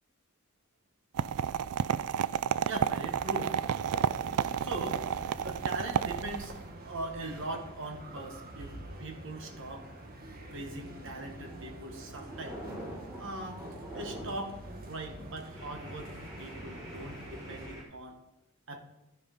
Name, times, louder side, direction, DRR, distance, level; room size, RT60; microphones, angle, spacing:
sound 1, 1.2-6.6, right 8 dB, 90° right, 0.3 m, -31 dB
voice 1, 2.7-3.6 4.6-5.0 5.4-6.5 6.8-9.9 10.5-12.6 13.2-13.6 13.9-14.6 14.9-18.2 18.7-18.8, right 2 dB, 60° right, 4 dB, 1.4 m, -40 dB
sound 2, 3.0-17.7, right 1 dB, 45° right, 1.2 m, -46 dB
sound 3, 11.4-11.7 12.0-14.5 14.8-15.0 15.5-17.8, right 1 dB, 15° right, 3.6 m, -45 dB
12.5 x 5.4 x 5.2 m, 0.97 s
head